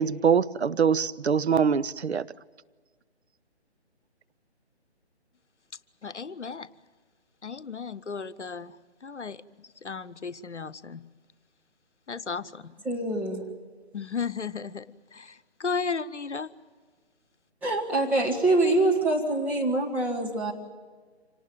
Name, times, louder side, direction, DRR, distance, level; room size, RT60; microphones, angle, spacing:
voice 1, 0.0-2.3, right 6 dB, 70° right, 0.7 m, -23 dB
voice 2, 6.0-6.7 7.4-11.0 12.1-12.7 13.9-16.5, left 5 dB, 90° left, 0.9 m, -35 dB
voice 3, 12.8-13.4 17.6-20.5, right 2 dB, 5° right, 1.4 m, -25 dB
26.0 x 18.5 x 9.1 m
figure-of-eight pair, 150°, 34 cm